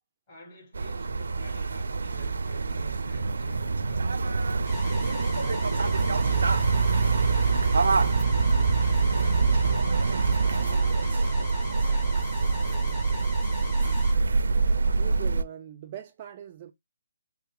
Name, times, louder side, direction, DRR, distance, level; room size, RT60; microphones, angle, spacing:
voice 1, 0.3-4.5 4.8-7.8 8.2-10.0 10.4-13.4, left 3 dB, 25° left, 3.4 m, -50 dB
sound 1, 0.7-15.4, right 4 dB, 85° right, 0.5 m, -25 dB
sound 2, 4.7-14.1, left 3 dB, 10° left, 1.6 m, -39 dB
voice 2, 14.9-16.7, right 10 dB, 25° right, 0.4 m, -41 dB
5.8 x 3.7 x 2.2 m
hypercardioid pair, 175°, 0 cm